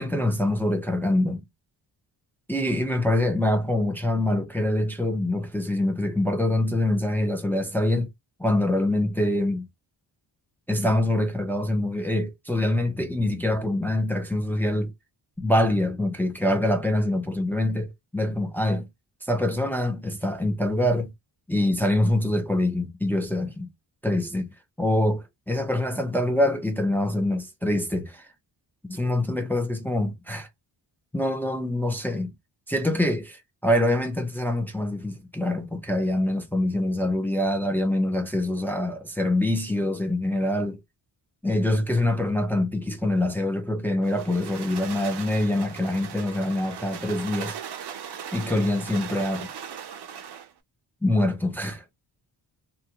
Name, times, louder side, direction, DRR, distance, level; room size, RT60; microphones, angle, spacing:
voice 1, 0.0-1.4 2.5-8.1 8.4-9.7 10.7-14.9 15.4-17.9 18.1-18.9 19.3-21.1 21.5-23.7 24.0-28.3 28.9-30.5 31.1-32.3 32.7-40.8 41.4-47.6 48.3-49.5 51.0-51.8, left 1 dB, 5° left, 0.4 m, -25 dB
sound 1, 44.0-50.5, right 8 dB, 60° right, 0.5 m, -38 dB
2.4 x 2.2 x 2.7 m
wide cardioid pair, 140°, 46 cm